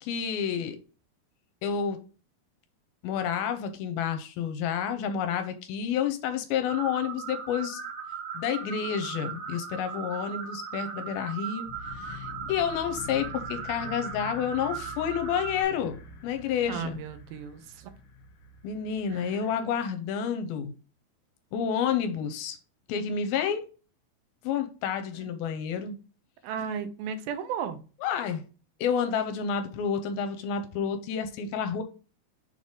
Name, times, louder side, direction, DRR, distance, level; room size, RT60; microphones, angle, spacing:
voice 1, 0.0-0.8 1.6-2.0 3.0-7.8 8.3-11.7 12.0-17.0 18.6-20.7 21.5-22.6 22.9-23.7 24.4-26.0 28.0-28.4 28.8-31.8, left 7 dB, 80° left, 7 dB, 2.5 m, -29 dB
sound 1, 6.7-15.6, right 6 dB, 60° right, 2.5 m, -38 dB
sound 2, 11.6-19.7, left 3 dB, 55° left, 1.7 m, -45 dB
voice 2, 16.7-17.9 19.1-19.5 25.1-25.3 26.4-27.8, right 7 dB, 80° right, 9 dB, 2.5 m, -35 dB
6.6 x 3.9 x 3.6 m, 0.35 s
omnidirectional pair, 4.5 m